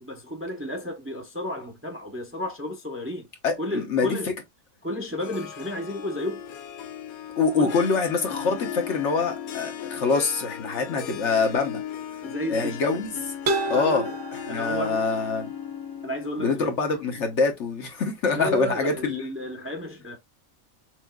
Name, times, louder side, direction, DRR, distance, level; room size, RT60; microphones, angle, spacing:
voice 1, 0.0-3.3 3.6-4.3 4.8-6.4 7.5-7.8 12.2-13.0 13.7-14.2 14.5-15.1 16.0-16.7 18.3-20.2, left 1 dB, 10° right, 0.7 m, -32 dB
voice 2, 3.4-4.2 7.4-11.8 12.5-13.1 13.7-14.0 14.5-15.5 16.4-19.2, left 4 dB, 60° left, 1.1 m, -25 dB
Harp, 5.2-17.4, left 9 dB, 80° left, 1.2 m, -37 dB
sound 1, 11.4-11.7 12.0-12.4 13.5-15.6, right 3 dB, 65° right, 1.3 m, -31 dB
6.1 x 2.5 x 2.3 m
omnidirectional pair, 1.5 m